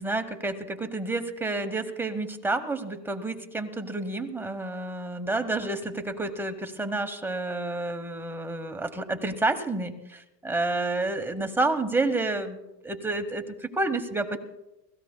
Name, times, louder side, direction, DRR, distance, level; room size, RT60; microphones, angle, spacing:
voice 1, 0.0-12.6 12.8-14.4, right 2 dB, 5° right, 7 dB, 1.0 m, -29 dB
29.0 x 16.5 x 2.2 m, 0.95 s
supercardioid pair, 125°, 49 cm